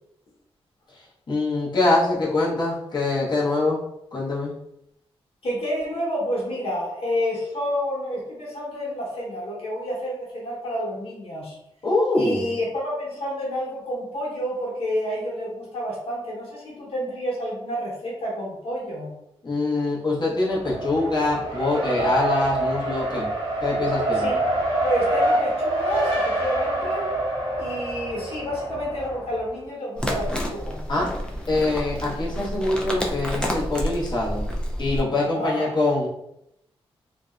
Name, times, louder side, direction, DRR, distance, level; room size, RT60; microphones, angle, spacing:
voice 1, 0.9-3.8 4.1-4.5 11.8-12.5 19.4-23.3 23.6-24.3 30.9-31.1 31.5-34.4 34.8-36.1, left 2 dB, 45° left, -6 dB, 0.9 m, -24 dB
voice 2, 5.4-11.6 12.1-19.1 24.1-24.4 24.8-27.0 27.6-30.8 35.3-35.7, equal, 70° left, -5 dB, 1.1 m, -29 dB
Race car auto racing, 20.4-29.5, right 1 dB, 75° right, 0.7 m, -26 dB
sound 1, 30.0-35.0, equal, 10° left, 0.4 m, -29 dB
2.6 x 2.1 x 2.4 m, 0.80 s
cardioid pair, 80°, 10 cm